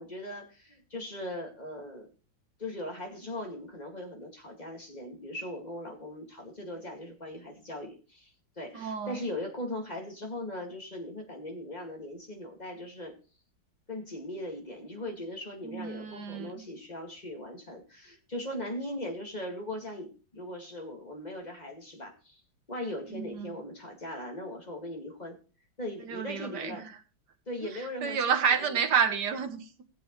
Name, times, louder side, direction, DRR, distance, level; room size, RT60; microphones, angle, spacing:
voice 1, 0.0-2.1 2.6-13.2 13.9-22.4 22.7-25.4 25.8-26.9 27.5-28.8, left 1 dB, 20° left, 2.3 m, -39 dB
voice 2, 8.7-9.2 15.6-16.5 23.1-23.5 26.0-26.8 27.6-27.7 28.0-29.8, right 7 dB, 60° right, 1.8 m, -30 dB
17.0 x 7.8 x 3.2 m
omnidirectional pair, 2.1 m